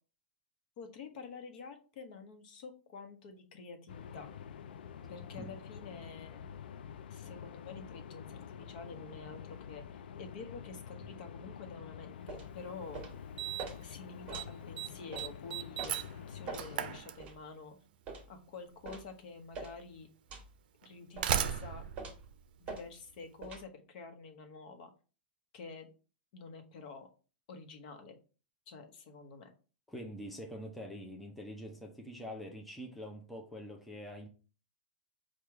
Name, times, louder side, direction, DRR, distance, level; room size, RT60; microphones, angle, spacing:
voice 1, 0.8-4.3 5.1-6.4 7.1-13.0 13.8-17.8 18.3-20.1 20.8-21.9 22.6-24.9 25.5-25.9 26.3-27.1 27.5-28.2 28.7-29.5, left 4 dB, 55° left, 1.0 m, -49 dB
sound 1, 3.9-17.0, left 8 dB, 85° left, 0.4 m, -48 dB
voice 2, 5.0-5.5 29.9-34.3, equal, ahead, 0.6 m, -45 dB
sound 2, 12.3-12.5 12.9-13.2 13.6-13.8 14.3-14.5 15.1-15.3 15.8-16.0 16.5-16.7 17.2-17.4 18.1-18.3 18.9-19.1 19.5-19.8 20.3-20.5 21.2-21.4 22.0-22.2 22.7-22.8 23.4-23.6, right 4 dB, 25° right, 1.3 m, -43 dB
Slam, 12.6-12.7 13.4-13.8 14.1-14.5 14.8-17.7 18.8-18.9 19.8-19.9 20.8-23.2, right 9 dB, 65° right, 0.5 m, -37 dB
4.6 x 2.4 x 4.7 m
supercardioid pair, 150°, 5 cm